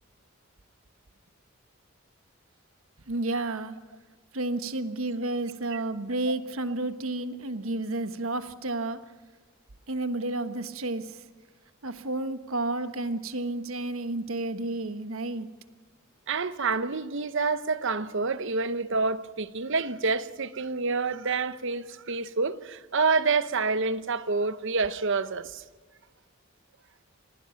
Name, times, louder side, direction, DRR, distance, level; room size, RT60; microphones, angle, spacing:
voice 1, 3.1-3.8 4.3-9.0 9.9-11.2 11.8-15.5, right 2 dB, 80° right, 1.4 m, -31 dB
voice 2, 16.3-25.6, right 4 dB, 60° right, 0.9 m, -28 dB
26.5 x 19.5 x 5.8 m
head